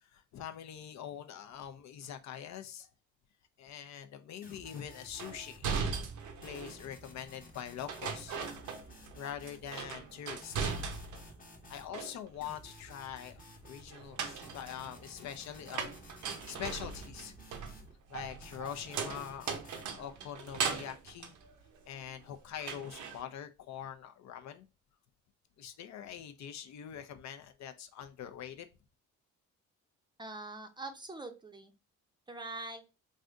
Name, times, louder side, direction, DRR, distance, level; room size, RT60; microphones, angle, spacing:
voice 1, 0.0-2.9 3.6-5.7 6.4-8.4 9.1-10.7 11.7-17.3 18.1-19.5 20.0-21.3 21.9-24.7 25.6-28.7, left 9 dB, 65° left, 0.5 m, -44 dB
sound 1, 4.4-5.9 6.4-9.9 10.4-11.9 12.4-13.9 14.4-17.9 18.4-19.9, equal, 30° left, 0.9 m, -54 dB
sound 2, 5.2-6.8 7.9-9.2 9.5-11.3 11.7-12.5 13.9-22.2 22.6-23.2, right 6 dB, 75° right, 0.7 m, -39 dB
voice 2, 30.2-31.7 32.3-32.8, right 2 dB, 15° right, 0.5 m, -43 dB
3.3 x 2.6 x 2.4 m
cardioid pair, 90°, 30 cm